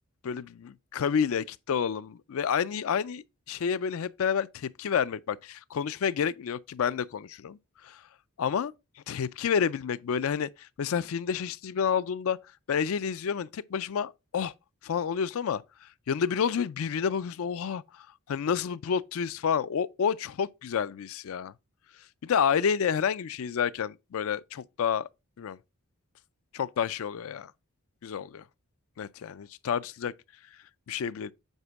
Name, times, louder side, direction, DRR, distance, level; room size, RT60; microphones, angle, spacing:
voice 1, 0.2-7.6 7.8-8.0 8.4-8.7 9.1-12.4 12.7-14.5 14.8-21.5 22.2-25.1 25.4-25.6 26.5-27.5 28.0-28.4 29.0-30.1 30.9-31.3, left 7 dB, 65° left, 0.4 m, -29 dB
8.0 x 5.0 x 3.5 m
head